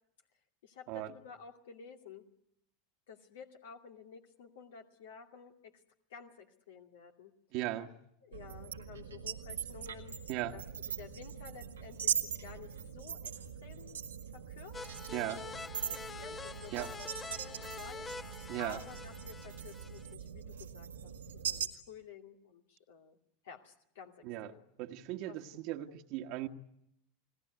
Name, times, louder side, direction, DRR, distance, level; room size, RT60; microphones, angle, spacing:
voice 1, 0.6-2.2 3.1-5.7 6.1-7.3 8.2-10.2 10.5-10.6 11.0-13.3 13.6-14.0 14.3-14.9 15.3-15.6 15.9-23.2 23.4-24.6 25.3-25.4 26.2-26.3, left 6 dB, 70° left, 3 dB, 2.4 m, -52 dB
voice 2, 7.5-7.9 10.3-10.6 15.1-15.4 16.7-16.9 18.5-18.8 24.2-24.5 24.8-26.5, right 14 dB, 55° right, 4 dB, 1.5 m, -37 dB
sound 1, 8.3-21.7, right 8 dB, 85° right, 1.9 m, -41 dB
sound 2, 14.7-20.1, left 4 dB, 25° left, 1.3 m, -46 dB
30.0 x 19.5 x 9.4 m, 0.78 s
hypercardioid pair, 90°, 0 cm